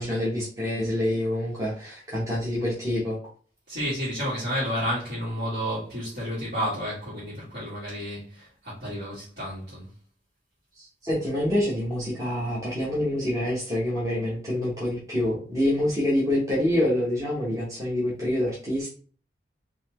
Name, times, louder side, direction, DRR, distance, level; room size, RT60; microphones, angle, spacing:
voice 1, 0.0-3.2 10.8-18.9, left 1 dB, 20° right, 1.0 m, -26 dB
voice 2, 3.7-9.9, equal, 60° right, 2.1 m, -31 dB
4.1 x 2.9 x 2.9 m
head